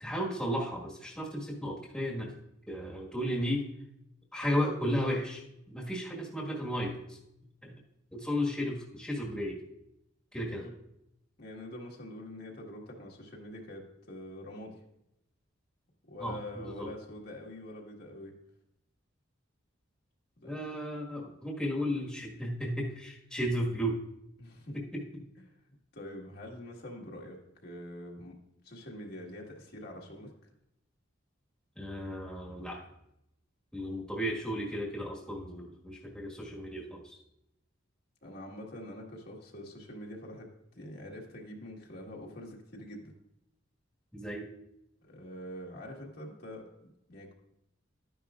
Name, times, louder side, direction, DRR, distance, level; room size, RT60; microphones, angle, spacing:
voice 1, 0.0-2.3 2.7-3.7 4.3-7.2 7.6-7.7 8.1-9.6 10.3-10.6 16.2-16.9 20.4-24.0 24.7-25.0 31.8-32.8 33.7-37.2 44.1-44.5, equal, 5° left, -3 dB, 1.6 m, -34 dB
voice 2, 11.4-14.8 16.1-18.3 20.4-20.6 24.4-24.8 25.4-25.5 25.9-28.4 28.6-30.3 38.2-40.5 40.7-43.1 45.0-47.3, left 1 dB, 55° left, -1 dB, 1.7 m, -45 dB
12.5 x 10.0 x 2.4 m, 0.83 s
head